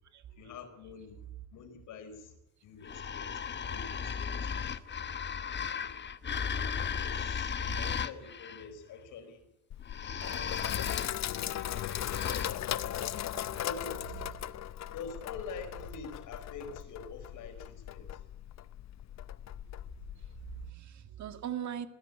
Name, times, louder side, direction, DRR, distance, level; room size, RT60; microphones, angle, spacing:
voice 1, 0.4-1.3 1.5-2.3 2.6-5.1 5.7-6.0 6.9-9.4 10.0-10.8 11.6-12.3 13.6-14.3 14.9-18.2, left 5 dB, 85° left, 7 dB, 4.7 m, -46 dB
sound 1, 2.8-8.6 9.8-12.5, left 7 dB, 35° left, 1.1 m, -36 dB
Sink (filling or washing), 9.7-20.7, left 11 dB, 60° left, 0.8 m, -38 dB
voice 2, 20.5-21.9, right 10 dB, 65° right, 9 dB, 1.9 m, -40 dB
21.5 x 16.0 x 9.8 m, 0.89 s
cardioid pair, 90°, 30 cm